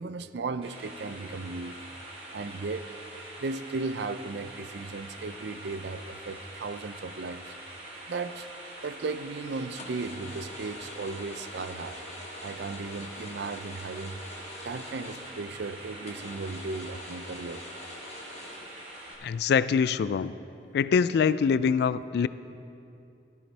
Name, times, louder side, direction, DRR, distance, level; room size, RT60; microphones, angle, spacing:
voice 1, 0.0-1.8 2.3-2.8 3.4-7.6 8.1-12.0 12.4-14.2 14.6-17.6, right 3 dB, 65° right, 12 dB, 0.5 m, -36 dB
sound 1, 0.6-19.1, right 1 dB, 35° right, 2.6 m, -44 dB
sound 2, 6.4-7.2 7.6-8.6 8.9-9.2 9.8-15.6 16.0-19.3, left 1 dB, 40° left, 1.5 m, -46 dB
voice 2, 19.2-20.3 20.7-22.3, left 6 dB, 65° left, 15 dB, 0.3 m, -24 dB
14.5 x 13.0 x 3.3 m, 2.7 s
head